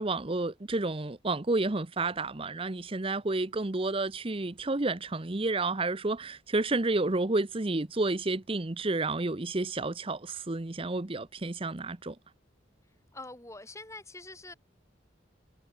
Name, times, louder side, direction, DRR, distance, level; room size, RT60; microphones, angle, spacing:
voice 1, 0.0-12.2, right 2 dB, 30° right, 0.9 m, -30 dB
voice 2, 13.1-14.5, left 2 dB, 15° left, 6.3 m, -45 dB
head